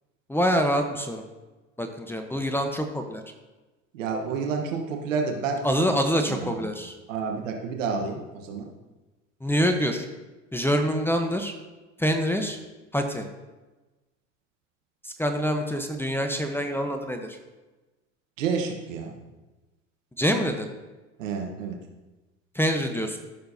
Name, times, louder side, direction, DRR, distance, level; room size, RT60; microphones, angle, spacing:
voice 1, 0.3-1.2 1.8-3.2 5.6-6.9 9.4-10.1 10.5-11.5 12.0-12.6 12.9-13.2 15.0-17.4 20.2-20.7 22.5-23.2, equal, 5° left, 5 dB, 0.9 m, -25 dB
voice 2, 3.9-5.8 6.3-6.6 7.1-8.7 18.4-19.2 21.2-21.8, right 5 dB, 75° right, 3 dB, 1.3 m, -29 dB
13.5 x 6.7 x 2.7 m, 1.1 s
hypercardioid pair, 75°, 38 cm